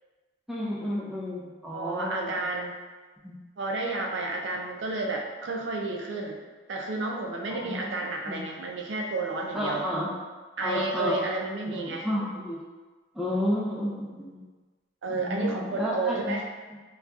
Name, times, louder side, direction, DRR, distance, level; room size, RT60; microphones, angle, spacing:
voice 1, 0.5-2.4 3.2-3.4 7.5-7.9 8.3-8.4 9.5-10.2 10.6-11.2 11.7-12.6 13.1-14.5 15.1-16.4 16.7-16.8, equal, 5° right, -5 dB, 0.4 m, -31 dB
voice 2, 1.7-2.7 3.6-6.4 6.7-9.8 10.6-12.1 15.0-16.5, right 3 dB, 70° right, 1 dB, 0.4 m, -31 dB
3.9 x 2.2 x 2.3 m, 1.3 s
head